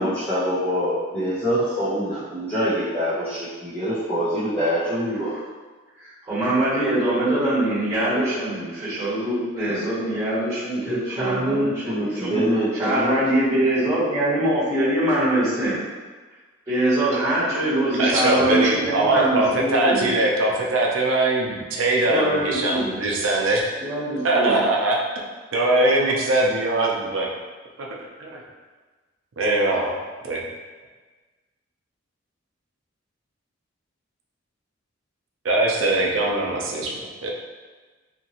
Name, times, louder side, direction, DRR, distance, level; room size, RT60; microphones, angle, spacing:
voice 1, 0.0-5.3 10.9-13.1, equal, 10° left, -15 dB, 0.8 m, -25 dB
voice 2, 6.0-12.3 12.7-15.7 16.7-20.2 22.0-22.9 23.8-24.6, right 1 dB, 15° right, -13 dB, 1.4 m, -23 dB
voice 3, 18.0-23.6 24.2-25.0 25.5-27.3 27.8-27.9 28.2-28.4 29.4-29.9 30.2-30.4 35.4-37.3, right 2 dB, 85° right, -2 dB, 0.5 m, -21 dB
2.8 x 2.6 x 2.8 m, 1.3 s
head